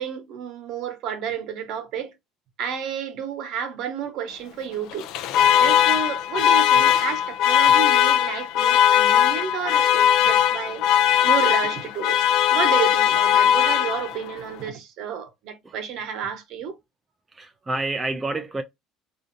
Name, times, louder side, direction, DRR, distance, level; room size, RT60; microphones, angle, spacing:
voice 1, 0.0-2.1 2.6-5.1 5.6-10.8 11.2-12.2 12.5-16.8, right 7 dB, 50° right, 1.0 m, -31 dB
Alarm, 4.9-14.3, left 10 dB, 60° left, 0.4 m, -19 dB
voice 2, 17.3-18.6, right 2 dB, 10° right, 0.3 m, -29 dB
4.7 x 2.5 x 2.6 m
cardioid pair, 170°, 0 cm